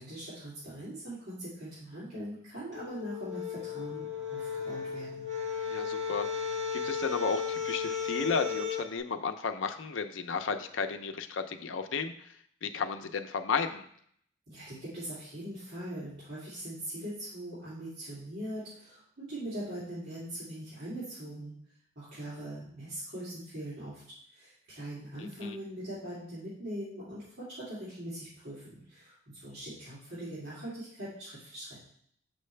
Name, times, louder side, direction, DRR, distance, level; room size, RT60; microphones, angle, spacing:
voice 1, 0.0-5.3 14.5-21.5 21.9-24.0 24.3-31.8, right 1 dB, 60° right, -12 dB, 2.8 m, -41 dB
sound 1, 2.7-8.9, left 6 dB, 35° right, 2.0 m, -35 dB
voice 2, 5.7-12.1 12.6-13.9 25.2-25.6, left 5 dB, 90° left, 7 dB, 0.6 m, -33 dB
6.6 x 5.9 x 3.3 m, 0.64 s
head